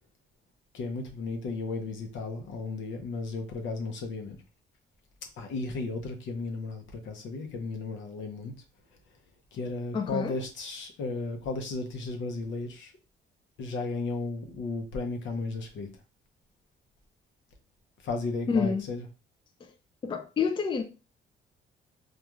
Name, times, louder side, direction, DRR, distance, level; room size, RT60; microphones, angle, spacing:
voice 1, 0.7-4.4 5.4-8.5 9.5-12.9 13.6-15.9 18.0-19.1, left 3 dB, 75° left, 0.7 m, -34 dB
voice 2, 9.9-10.3 18.5-18.8 20.0-20.8, left 5 dB, 25° left, 0.4 m, -28 dB
2.4 x 2.3 x 2.9 m
cardioid pair, 90°, 20 cm